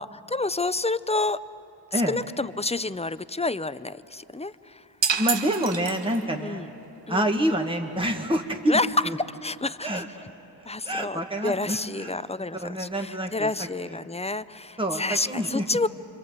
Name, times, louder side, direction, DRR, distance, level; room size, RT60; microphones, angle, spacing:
voice 1, 0.0-1.4 1.9-4.8 6.4-6.7 7.1-7.2 8.7-8.9 9.4-10.0 10.7-15.9, left 2 dB, 15° left, 15 dB, 0.5 m, -29 dB
sound 1, 5.0-6.5, right 6 dB, 80° right, 1.1 m, -28 dB
voice 2, 5.2-6.7 7.1-8.8 9.0-9.2 9.8-10.1 10.6-12.2 12.5-13.9 14.8-15.7, right 1 dB, 10° right, 3 dB, 1.7 m, -27 dB
26.5 x 25.0 x 8.1 m, 2.8 s
wide cardioid pair, 55°, 43 cm